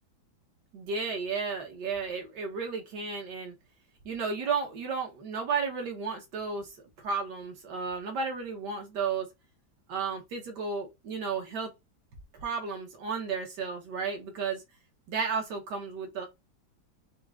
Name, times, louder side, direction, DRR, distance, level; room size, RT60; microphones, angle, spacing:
voice 1, 0.7-3.5 4.0-6.7 7.0-9.3 9.9-11.7 12.3-14.6 15.1-16.3, right 5 dB, 65° right, 1.4 m, -33 dB
4.7 x 2.1 x 2.3 m
omnidirectional pair, 2.1 m